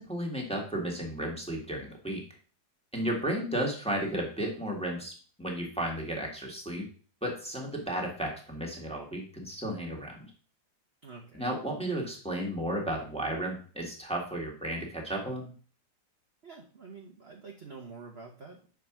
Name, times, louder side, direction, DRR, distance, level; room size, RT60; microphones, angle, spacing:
voice 1, 0.0-2.2 2.9-6.8 7.2-10.3 11.3-15.5, right 1 dB, 5° left, -1 dB, 1.6 m, -33 dB
voice 2, 11.0-11.4 16.4-18.7, right 4 dB, 45° right, 1 dB, 0.9 m, -47 dB
5.9 x 4.9 x 6.0 m, 0.41 s
omnidirectional pair, 2.0 m